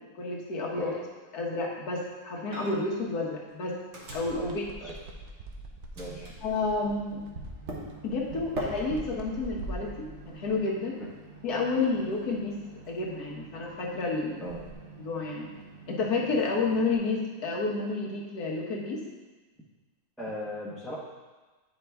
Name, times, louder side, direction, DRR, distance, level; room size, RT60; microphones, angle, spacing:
voice 1, 0.2-0.9 1.3-3.8 4.1-4.9 6.4-7.2 8.0-10.9 11.4-12.6 12.9-14.4 15.0-15.5 15.9-19.0, left 3 dB, 85° left, -1 dB, 1.7 m, -30 dB
Microwave oven, 2.5-3.0 3.3-5.5 5.9-17.0, right 1 dB, 55° right, 1.4 m, -44 dB
sound 1, 4.0-10.6 14.4-14.7, right 2 dB, 80° right, 1.3 m, -44 dB
voice 2, 6.0-6.3 14.4-14.6 20.2-21.0, left 1 dB, ahead, -6 dB, 0.7 m, -37 dB
9.3 x 5.2 x 3.4 m, 1.3 s
omnidirectional pair, 1.6 m